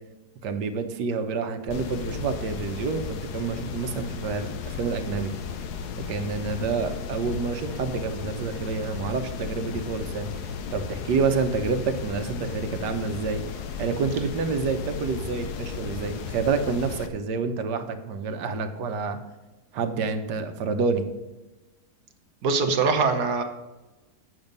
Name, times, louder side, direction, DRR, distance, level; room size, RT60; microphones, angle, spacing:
voice 1, 0.4-5.3 6.1-10.3 10.7-13.4 13.8-19.2 19.7-21.0, right 4 dB, 85° right, 7 dB, 1.5 m, -28 dB
sound 1, 1.7-17.1, left 6 dB, 75° left, 1.3 m, -35 dB
voice 2, 22.4-23.4, right 4 dB, 70° right, 6 dB, 1.5 m, -22 dB
9.0 x 7.0 x 5.3 m, 1.1 s
omnidirectional pair, 1.8 m